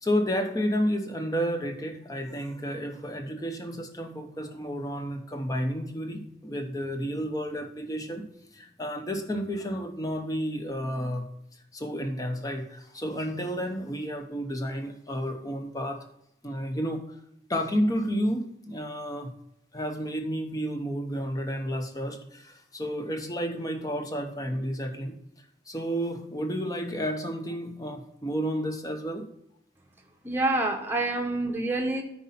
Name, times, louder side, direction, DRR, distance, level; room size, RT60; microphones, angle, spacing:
voice 1, 0.0-8.3 8.5-16.0 16.4-17.0 17.5-19.3 19.7-25.2 25.7-29.3, equal, 20° left, 5 dB, 0.9 m, -31 dB
voice 2, 30.2-32.0, right 2 dB, 10° right, 2 dB, 0.9 m, -27 dB
9.7 x 4.3 x 5.6 m, 0.79 s
head